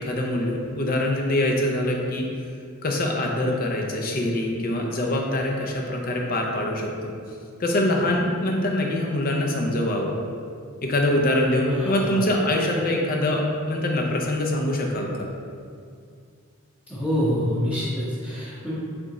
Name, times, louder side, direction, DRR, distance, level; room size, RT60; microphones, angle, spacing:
voice 1, 0.0-2.3 2.8-7.1 7.6-10.1 10.8-15.3, left 1 dB, 40° left, 0 dB, 0.5 m, -24 dB
voice 2, 11.7-12.3 15.0-15.1 16.9-18.7, equal, 10° left, -13 dB, 0.9 m, -26 dB
3.8 x 3.4 x 4.0 m, 2.3 s
head